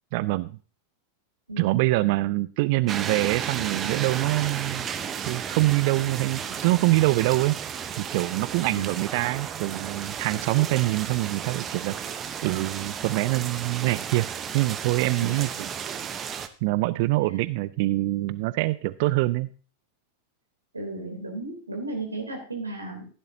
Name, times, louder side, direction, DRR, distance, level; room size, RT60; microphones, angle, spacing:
voice 1, 0.1-0.6 1.6-4.9 5.3-7.5 8.0-12.0 12.4-14.3 14.5-15.5 16.6-19.5, right 19 dB, 50° right, 16 dB, 0.4 m, -24 dB
voice 2, 1.5-1.9 10.3-10.6 15.2-15.5 17.2-17.3 20.7-23.1, right 2 dB, 80° right, 2 dB, 3.1 m, -35 dB
sound 1, 2.9-16.5, right 8 dB, 25° right, 0.9 m, -33 dB
15.5 x 10.5 x 2.7 m, 0.38 s
figure-of-eight pair, 90°, 0 cm